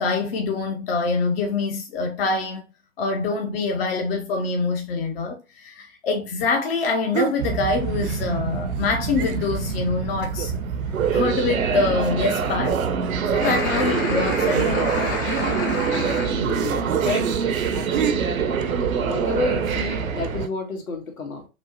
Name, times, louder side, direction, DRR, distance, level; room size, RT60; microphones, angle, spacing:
voice 1, 0.0-2.7 3.0-10.5 11.1-12.8 13.3-15.2, left 3 dB, 45° left, 0.7 m, -25 dB
sound 1, 7.1-7.4 8.0-8.5 8.8-8.9 9.2-9.7 10.2-10.7 11.0-11.1 12.0-18.1, right 9 dB, 45° right, 0.5 m, -33 dB
sound 2, 7.4-20.5, right 6 dB, 80° right, 0.7 m, -25 dB
sound 3, 13.4-16.3, left 2 dB, 20° left, 0.3 m, -28 dB
voice 2, 16.3-17.3 17.7-18.4 19.0-21.5, left 3 dB, 75° left, 1.5 m, -30 dB
6.0 x 2.1 x 2.7 m
figure-of-eight pair, 115°, 41 cm